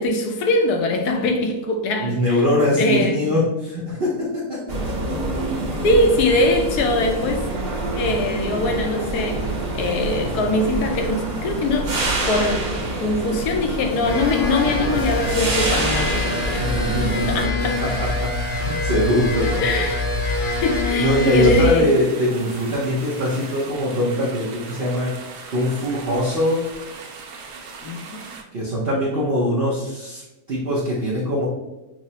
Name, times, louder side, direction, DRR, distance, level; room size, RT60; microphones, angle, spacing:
voice 1, 0.0-2.2 2.8-3.2 5.8-7.5 7.9-9.5 9.7-11.9 12.3-12.7 13.0-16.2 16.5-16.6 17.3-17.8 19.6-20.0 20.6-21.9 27.8-28.3 29.1-29.2, left 2 dB, 80° left, 1.2 m, -22 dB
voice 2, 2.0-5.2 16.6-19.6 21.0-25.1 25.5-26.6 28.5-31.5, left 1 dB, 50° right, 0.7 m, -22 dB
sound 1, 4.7-17.5, right 2 dB, 70° right, 1.5 m, -26 dB
sound 2, 14.0-21.9 22.2-23.7, left 2 dB, 45° left, 0.9 m, -25 dB
sound 3, 17.6-28.4, right 4 dB, 85° right, 1.2 m, -39 dB
6.0 x 2.0 x 2.7 m
omnidirectional pair, 1.7 m